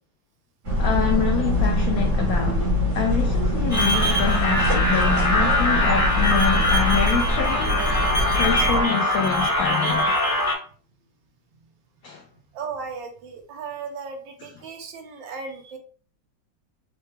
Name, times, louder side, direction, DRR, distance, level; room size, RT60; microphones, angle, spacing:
sound 1, 0.6-8.9, equal, 40° right, 1.5 m, -23 dB
voice 1, 0.8-2.6 2.9-7.7 8.1-10.1 12.0-12.2, left 6 dB, 90° left, 0.7 m, -26 dB
sound 2, 3.7-10.5, left 1 dB, 35° left, 0.9 m, -22 dB
voice 2, 12.5-15.8, right 5 dB, 75° right, 1.4 m, -36 dB
3.8 x 2.1 x 3.2 m
omnidirectional pair, 2.1 m